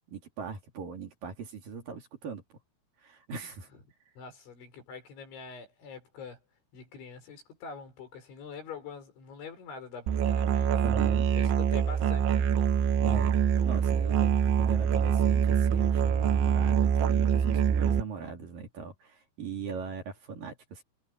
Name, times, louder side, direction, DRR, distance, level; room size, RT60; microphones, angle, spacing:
voice 1, 0.1-2.4 3.0-3.7 10.8-11.3 13.0-13.3 13.6-20.8, right 5 dB, 50° right, 4.6 m, -39 dB
voice 2, 4.2-6.4 6.7-10.8 11.4-12.5, left 5 dB, 75° left, 8.7 m, -45 dB
Musical instrument, 10.1-18.0, right 8 dB, 80° right, 3.9 m, -25 dB
omnidirectional pair, 5.3 m